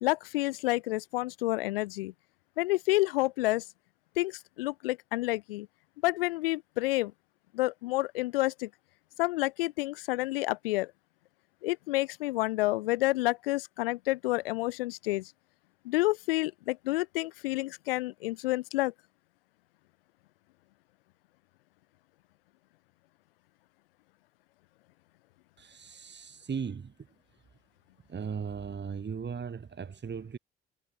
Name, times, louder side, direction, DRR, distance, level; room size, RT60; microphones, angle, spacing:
voice 1, 0.0-2.1 2.6-3.6 4.2-5.7 6.0-7.1 7.5-8.7 9.2-10.9 11.6-15.2 15.8-18.9, left 19 dB, 75° left, 1.3 m, -29 dB
voice 2, 25.6-26.9 28.1-30.4, right 6 dB, 35° right, 5.5 m, -37 dB
figure-of-eight pair, 45°, 29 cm